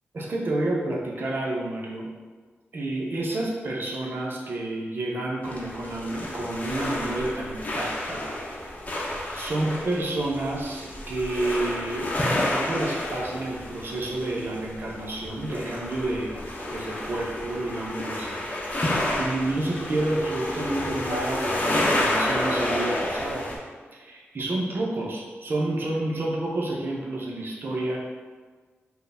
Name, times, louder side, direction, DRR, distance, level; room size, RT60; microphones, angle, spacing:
voice 1, 0.1-2.1 2.7-8.2 9.3-12.1 12.5-16.4 16.7-23.5 23.9-28.0, right 2 dB, 55° right, -3 dB, 0.6 m, -30 dB
sound 1, 5.4-23.6, left 1 dB, 35° left, 0.7 m, -30 dB
4.5 x 2.1 x 3.4 m, 1.4 s
wide cardioid pair, 90°, 4 cm